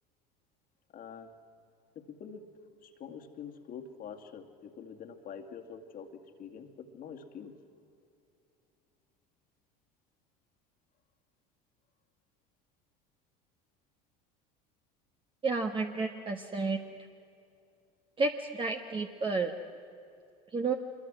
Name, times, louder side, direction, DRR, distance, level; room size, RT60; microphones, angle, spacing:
voice 1, 0.9-1.3 2.0-2.5 2.8-7.5, left 7 dB, 45° left, 4 dB, 2.3 m, -46 dB
voice 2, 15.4-16.8 18.2-19.5 20.5-20.7, right 3 dB, 25° right, 3 dB, 1.5 m, -31 dB
25.5 x 22.0 x 6.3 m, 2.6 s
hypercardioid pair, 80°, 20 cm